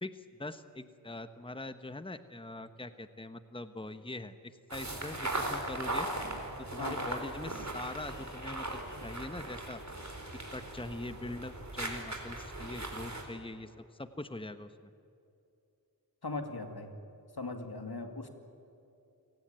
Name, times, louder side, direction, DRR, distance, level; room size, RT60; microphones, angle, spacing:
voice 1, 0.0-4.3 4.7-6.1 6.6-9.8 10.5-14.7, left 2 dB, 15° left, 10 dB, 1.1 m, -42 dB
sound 1, 4.7-13.2, right 1 dB, 45° right, 4.3 m, -38 dB
voice 2, 16.2-16.9 17.3-18.3, left 3 dB, 80° left, 6 dB, 2.4 m, -39 dB
29.5 x 18.0 x 9.1 m, 2.8 s
wide cardioid pair, 40°, 37 cm